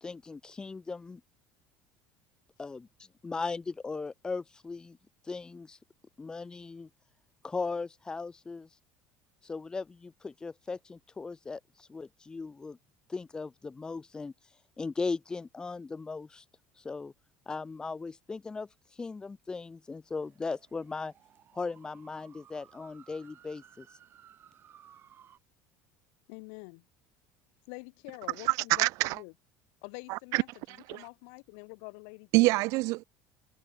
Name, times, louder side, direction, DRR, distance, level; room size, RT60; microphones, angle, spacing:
voice 1, 0.0-1.2 2.6-2.9 3.2-5.0 5.2-5.8 6.2-6.9 7.4-8.7 9.4-12.8 13.1-14.3 14.8-16.4 16.8-17.1 17.5-18.7 19.0-21.1 21.5-23.9, left 4 dB, 15° left, 0.3 m, -38 dB
sound 1, 20.2-25.4, right 9 dB, 35° right, 2.7 m, -58 dB
voice 2, 26.3-26.8 27.7-29.3 29.8-30.5 30.9-32.6, left 40 dB or more, 80° left, 2.0 m, -46 dB
voice 3, 28.4-29.2 30.1-31.1 32.3-33.0, right 23 dB, 65° right, 0.4 m, -27 dB
cardioid pair, 140°, 6 cm